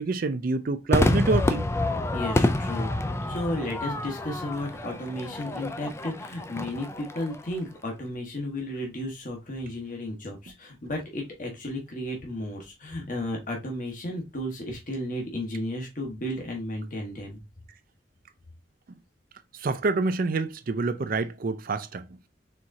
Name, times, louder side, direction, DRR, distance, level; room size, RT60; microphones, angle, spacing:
voice 1, 0.0-1.7 19.6-22.0, right 3 dB, 50° right, 0.5 m, -27 dB
Crowd / Fireworks, 0.9-7.5, left 2 dB, 15° left, 0.4 m, -28 dB
voice 2, 2.1-17.4, left 1 dB, 45° left, 1.2 m, -33 dB
4.4 x 3.6 x 2.7 m
head